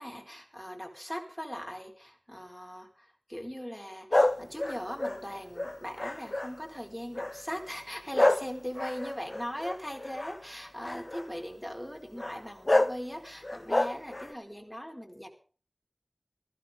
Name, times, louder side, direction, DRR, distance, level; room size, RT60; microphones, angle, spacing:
voice 1, 0.0-15.3, equal, ahead, 2 dB, 4.5 m, -39 dB
sound 1, 4.1-6.7 7.1-7.5 8.1-10.4 10.8-11.3 12.2-12.3 12.7-13.0 13.4-14.3, left 1 dB, 50° left, 0.8 m, -28 dB
19.5 x 16.0 x 3.7 m, 0.40 s
wide cardioid pair, 45°, 0 cm